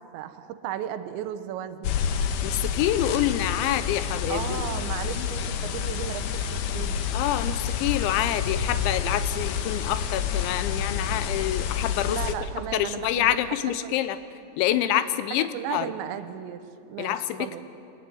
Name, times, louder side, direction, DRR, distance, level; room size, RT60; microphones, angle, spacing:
voice 1, 0.1-2.0 4.3-7.1 12.1-13.9 14.8-15.0 15.3-17.6, right 10 dB, 80° right, 10 dB, 3.2 m, -35 dB
sound 1, 1.8-12.4, left 7 dB, 70° left, 2.7 m, -28 dB
voice 2, 2.4-4.6 5.2-5.3 7.1-12.2 12.7-14.2 14.6-15.9 17.0-17.7, left 12 dB, 90° left, 13 dB, 3.2 m, -27 dB
24.0 x 19.0 x 9.4 m, 2.6 s
omnidirectional pair, 5.1 m